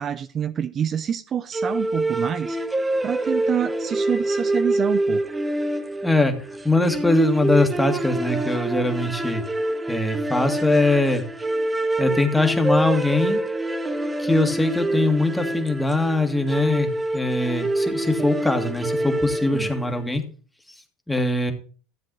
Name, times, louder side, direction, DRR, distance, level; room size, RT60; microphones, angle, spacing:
voice 1, 0.0-2.6 3.0-5.2 19.5-19.7, right 8 dB, 40° right, 0.5 m, -27 dB
sound 1, 1.5-20.0, right 1 dB, 15° right, 1.0 m, -26 dB
voice 2, 6.0-9.4 9.9-11.2 12.0-13.4 14.2-20.2 21.1-21.5, left 2 dB, 5° left, 2.0 m, -22 dB
13.5 x 7.5 x 4.0 m
hypercardioid pair, 90°, 0 cm